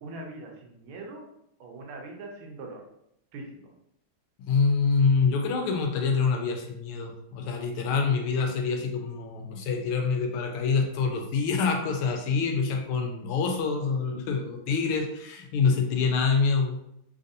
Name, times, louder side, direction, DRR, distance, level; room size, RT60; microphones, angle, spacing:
voice 1, 0.0-1.2 1.6-2.8 3.3-3.7, right 2 dB, 80° right, 1 dB, 1.6 m, -41 dB
voice 2, 4.5-16.9, left 5 dB, 85° left, 3 dB, 1.5 m, -26 dB
4.0 x 2.6 x 2.5 m, 0.77 s
omnidirectional pair, 2.4 m